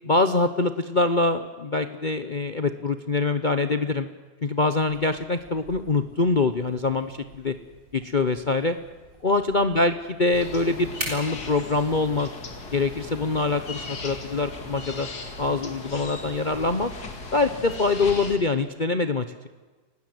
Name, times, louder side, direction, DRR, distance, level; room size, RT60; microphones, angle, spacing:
voice 1, 0.0-4.1 4.4-7.5 7.9-8.8 9.2-12.3 12.7-15.1 15.4-16.9 17.3-19.5, left 3 dB, 40° left, 9 dB, 0.8 m, -24 dB
sound 1, 4.8-16.7, right 1 dB, 30° right, 7.4 m, -45 dB
sound 2, 10.3-18.4, left 3 dB, 60° left, 2.9 m, -38 dB
30.0 x 17.5 x 7.9 m, 1.3 s
omnidirectional pair, 2.0 m